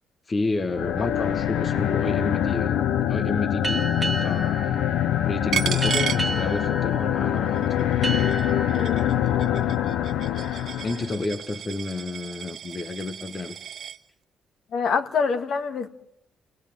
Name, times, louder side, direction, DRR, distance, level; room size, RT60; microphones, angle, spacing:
voice 1, 0.3-4.8 5.2-8.0 9.6-9.7 10.8-13.6, left 3 dB, 35° left, 1.5 m, -31 dB
sound 1, 0.7-11.2, left 10 dB, 85° left, 1.2 m, -24 dB
sound 2, 3.6-10.9, right 3 dB, 20° right, 2.1 m, -34 dB
Coin (dropping), 5.5-7.0 7.4-14.0, right 9 dB, 60° right, 1.0 m, -34 dB
voice 2, 14.7-15.9, left 5 dB, 65° left, 2.4 m, -25 dB
28.5 x 20.5 x 9.1 m
cardioid pair, 90°, 0 cm